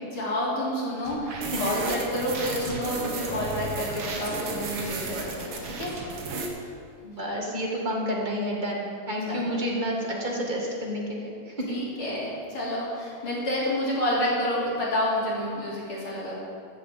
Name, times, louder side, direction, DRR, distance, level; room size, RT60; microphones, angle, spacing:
voice 1, 0.1-6.0 9.3-9.4 11.7-16.4, left 1 dB, 40° left, -6 dB, 4.0 m, -29 dB
sound 1, 1.1-6.5, right 3 dB, 50° right, 1.8 m, -33 dB
voice 2, 7.0-11.8, equal, 20° right, -3 dB, 1.3 m, -30 dB
14.5 x 7.6 x 7.7 m, 2.3 s
omnidirectional pair, 3.8 m